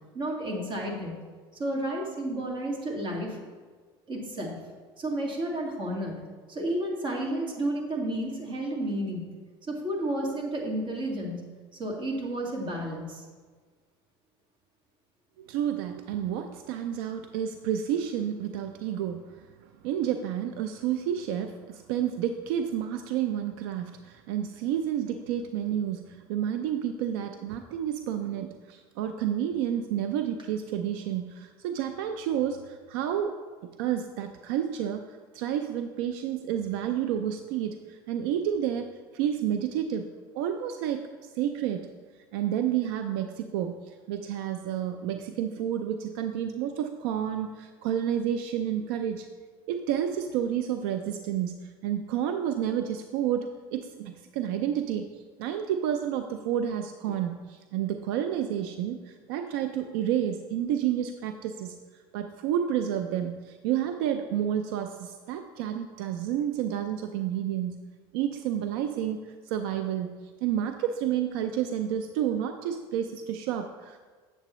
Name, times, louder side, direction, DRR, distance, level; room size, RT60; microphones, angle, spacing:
voice 1, 0.1-1.2 1.6-3.4 4.1-4.6 5.0-6.2 6.5-9.3 9.6-11.4 11.7-13.2, right 1 dB, 40° right, -1 dB, 2.0 m, -31 dB
voice 2, 15.4-19.5 19.8-33.4 33.8-41.1 41.4-41.9 42.3-49.3 49.7-61.8 62.1-67.8 68.1-70.1 70.4-74.0, right 10 dB, 85° right, 7 dB, 0.4 m, -30 dB
7.9 x 7.5 x 3.1 m, 1.5 s
supercardioid pair, 120°, 12 cm